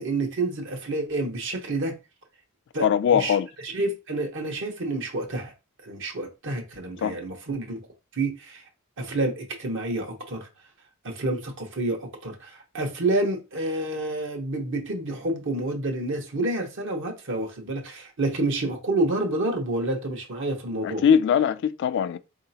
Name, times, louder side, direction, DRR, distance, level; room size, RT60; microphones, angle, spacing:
voice 1, 0.0-1.9 2.7-2.9 3.1-3.4 3.6-5.5 5.8-7.8 8.1-8.6 9.0-10.5 11.0-21.0, right 2 dB, 65° right, 1.0 m, -28 dB
voice 2, 2.8-3.5 7.0-7.2 20.8-22.2, left 8 dB, 60° left, 0.3 m, -21 dB
3.9 x 2.8 x 2.7 m
head